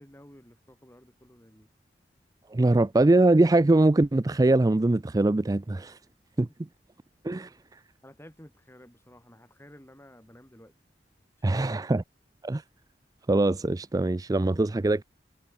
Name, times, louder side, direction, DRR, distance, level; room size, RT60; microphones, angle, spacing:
voice 1, 0.0-1.7 8.0-10.7 11.4-11.7, equal, 15° left, 5.3 m, -52 dB
voice 2, 2.5-6.0 6.4-6.5 7.2-7.8 11.4-12.0 12.4-12.6 13.3-15.0, right 2 dB, 20° right, 0.4 m, -22 dB
head